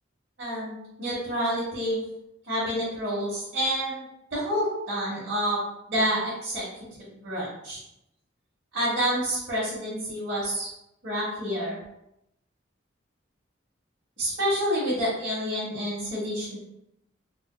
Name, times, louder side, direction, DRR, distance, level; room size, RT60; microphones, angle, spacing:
voice 1, 0.4-2.0 2.5-4.0 4.3-5.6 5.9-6.6 7.1-7.8 8.7-10.7 11.0-11.8 14.2-16.6, equal, 65° right, -10 dB, 1.2 m, -28 dB
3.6 x 2.6 x 2.2 m, 0.84 s
head